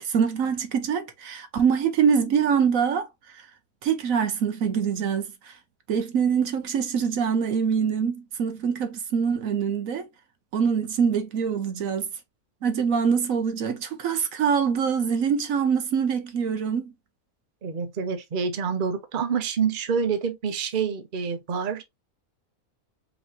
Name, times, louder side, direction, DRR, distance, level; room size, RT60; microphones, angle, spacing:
voice 1, 0.0-3.5 3.8-5.6 5.9-10.1 10.5-12.1 12.6-16.9, right 7 dB, 70° right, 1.1 m, -24 dB
voice 2, 17.6-21.8, right 6 dB, 40° right, 0.9 m, -27 dB
5.1 x 3.1 x 2.9 m
omnidirectional pair, 1.5 m